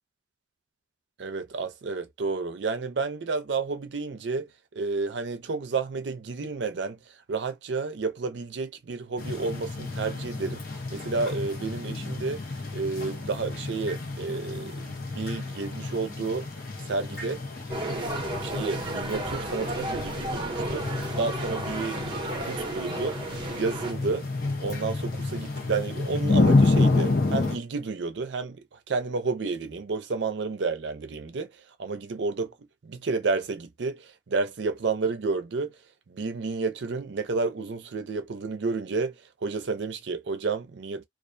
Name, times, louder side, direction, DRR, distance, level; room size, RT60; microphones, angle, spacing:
voice 1, 1.2-4.5 4.7-7.0 7.3-10.6 10.9-12.4 12.7-16.5 16.9-17.4 17.8-18.1 18.4-20.9 21.2-23.2 23.5-24.2 24.6-28.6 28.9-31.5 31.8-32.5 32.8-35.7 36.1-39.1 39.4-41.0, right 4 dB, 70° right, 0.5 m, -31 dB
sound 1, 9.2-27.6, left 3 dB, 50° left, 0.8 m, -29 dB
sound 2, 17.7-23.9, right 1 dB, 25° right, 0.7 m, -33 dB
2.4 x 2.1 x 2.5 m
head